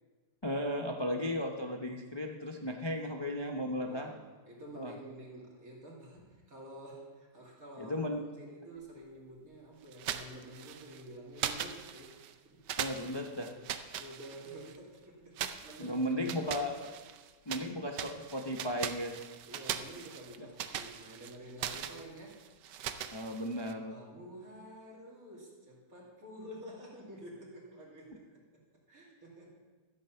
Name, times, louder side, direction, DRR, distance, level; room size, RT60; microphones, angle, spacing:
voice 1, 0.4-4.1 4.7-4.9 7.8-8.2 12.8-13.5 15.8-16.9 17.5-19.2 23.1-23.9, left 1 dB, 30° left, 2 dB, 0.4 m, -35 dB
voice 2, 3.8-12.1 12.4-12.6 13.5-16.7 17.7-17.9 19.4-22.5 23.9-28.2 28.5-28.6 28.9-29.6, right 1 dB, 55° right, -3 dB, 3.0 m, -50 dB
sound 1, 9.9-11.0 11.4-12.3 12.7-14.8 15.4-17.7 17.9-23.7, right 9 dB, 80° right, 1.3 m, -40 dB
13.0 x 8.8 x 5.6 m, 1.3 s
omnidirectional pair, 1.8 m